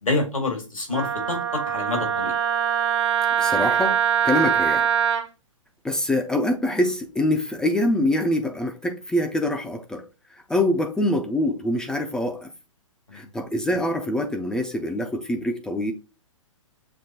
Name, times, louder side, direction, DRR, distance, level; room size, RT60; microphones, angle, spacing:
voice 1, 0.0-2.3 13.1-13.3, left 3 dB, 85° left, 1.9 m, -27 dB
Wind instrument woodwind instrument, 0.9-5.2, right 8 dB, 55° right, 0.7 m, -23 dB
voice 2, 3.4-4.0 4.2-4.9 5.8-10.0 10.3-12.5 13.1-15.9, left 1 dB, 5° left, 0.4 m, -24 dB
6.9 x 2.8 x 2.8 m
figure-of-eight pair, 120°, 17 cm